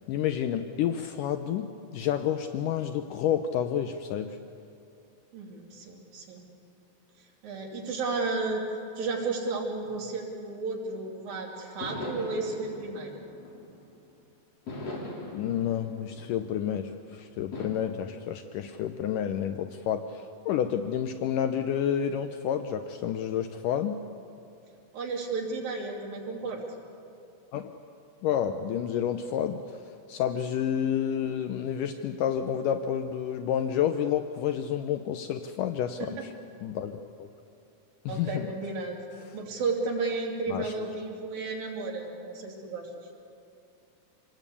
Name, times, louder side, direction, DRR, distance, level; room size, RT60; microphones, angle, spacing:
voice 1, 0.1-4.4 15.3-24.0 27.5-27.7 28.2-36.3 36.6-37.3 38.1-38.5 39.3-39.4 40.5-40.9, left 9 dB, 75° left, 8 dB, 2.2 m, -30 dB
voice 2, 5.3-6.5 7.2-13.1 24.9-26.7 36.0-36.3 38.1-39.0 39.3-42.9, right 3 dB, 80° right, -1 dB, 4.8 m, -33 dB
sound 1, 11.8-14.1 14.7-16.9 17.5-17.7, left 2 dB, 45° left, 4.5 m, -40 dB
27.0 x 20.0 x 8.5 m, 2.6 s
omnidirectional pair, 4.0 m